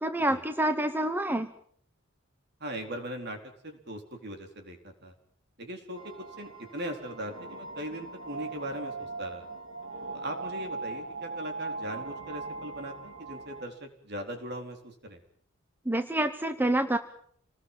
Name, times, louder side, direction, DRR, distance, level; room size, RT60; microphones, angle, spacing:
voice 1, 0.0-1.5 15.9-17.0, right 1 dB, 10° right, 8 dB, 1.0 m, -27 dB
voice 2, 2.6-3.4 3.6-5.1 5.6-9.4 10.1-15.2, right 1 dB, 55° right, 5 dB, 4.3 m, -39 dB
sound 1, 6.0-13.7, right 3 dB, 75° right, 3.8 m, -40 dB
27.5 x 19.5 x 7.6 m, 0.63 s
head